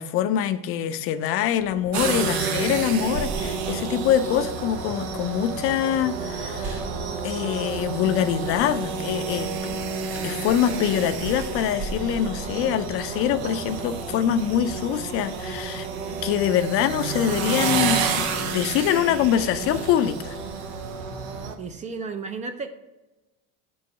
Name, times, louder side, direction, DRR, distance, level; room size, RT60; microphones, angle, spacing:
voice 1, 0.0-6.8 7.2-9.8 10.2-15.9 16.2-20.4, left 10 dB, 45° left, 11 dB, 0.4 m, -24 dB
sound 1, 1.6-19.7, left 5 dB, 70° left, 0.8 m, -48 dB
sound 2, 1.9-21.6, right 5 dB, 90° right, 0.9 m, -30 dB
sound 3, 6.6-14.9, right 3 dB, 45° right, 1.6 m, -45 dB
voice 2, 21.6-22.7, right 4 dB, 25° right, 9 dB, 0.4 m, -33 dB
5.2 x 4.6 x 5.2 m, 1.0 s
supercardioid pair, 135°, 31 cm